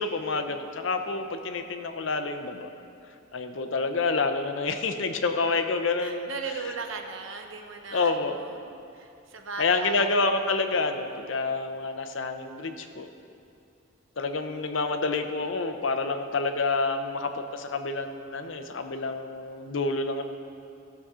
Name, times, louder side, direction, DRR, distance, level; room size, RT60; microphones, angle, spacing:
voice 1, 0.0-2.7 3.3-6.3 7.9-8.4 9.6-13.1 14.2-20.2, left 3 dB, 70° left, 7 dB, 0.7 m, -28 dB
voice 2, 5.3-10.1, right 4 dB, 80° right, 4 dB, 0.9 m, -38 dB
15.5 x 6.9 x 3.7 m, 2.5 s
head